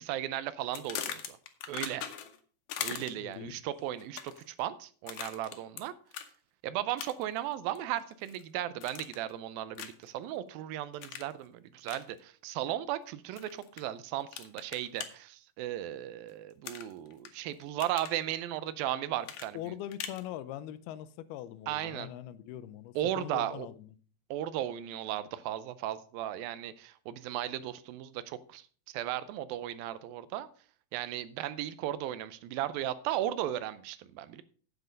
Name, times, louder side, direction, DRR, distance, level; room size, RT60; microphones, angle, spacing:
voice 1, 0.0-1.4 1.7-2.1 2.8-5.9 6.6-19.7 21.7-22.1 23.0-23.7 24.3-30.5 30.9-34.4, right 12 dB, 80° right, 2.3 m, -36 dB
sound 1, 0.7-2.4 2.7-3.3 4.0-4.5 5.1-5.8 6.1-6.3 7.0-7.4 7.8-8.4 8.8-9.3 9.8-10.1 11.0-11.3 11.8-12.0 13.4-13.8 14.3-15.1 16.6-17.3 17.6-18.2 19.2-20.2, left 10 dB, 70° left, 2.6 m, -40 dB
voice 2, 3.2-3.5 19.5-23.9, left 12 dB, 90° left, 2.7 m, -42 dB
9.3 x 8.1 x 5.2 m
omnidirectional pair, 4.4 m